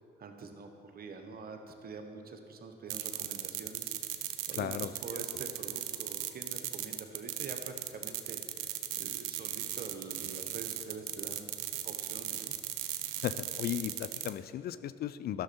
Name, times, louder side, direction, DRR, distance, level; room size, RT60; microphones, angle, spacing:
voice 1, 0.2-11.5 11.8-12.5, right 4 dB, 50° right, 6 dB, 1.1 m, -46 dB
sound 1, 2.9-14.3, right 12 dB, 85° right, 0.5 m, -37 dB
voice 2, 4.5-5.2 13.2-15.4, left 11 dB, 50° left, 13 dB, 0.4 m, -36 dB
12.0 x 6.3 x 4.3 m, 2.5 s
hypercardioid pair, 55°, 20 cm